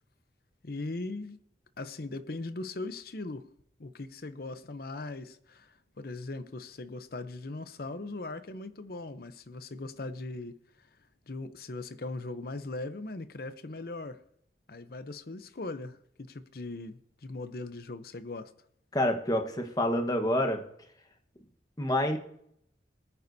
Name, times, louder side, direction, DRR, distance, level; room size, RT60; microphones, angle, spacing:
voice 1, 0.6-1.4 1.8-3.5 3.8-10.9 11.3-14.2 14.7-18.5, left 2 dB, 55° left, 0.7 m, -39 dB
voice 2, 18.9-20.6 21.8-22.2, left 1 dB, 20° left, 1.3 m, -27 dB
20.5 x 9.7 x 2.7 m
head